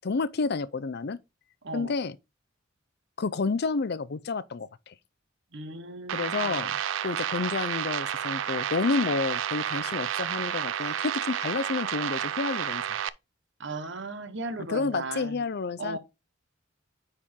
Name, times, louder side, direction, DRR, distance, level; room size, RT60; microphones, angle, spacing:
voice 1, 0.0-1.2 1.7-2.2 3.2-4.9 6.1-12.8 14.7-16.0, left 4 dB, 55° left, 0.5 m, -30 dB
voice 2, 1.6-1.9 5.5-6.6 13.6-15.4 15.8-16.0, right 2 dB, 65° right, 1.3 m, -36 dB
sound 1, 6.1-13.1, right 9 dB, 85° right, 0.5 m, -31 dB
9.6 x 4.3 x 3.7 m
head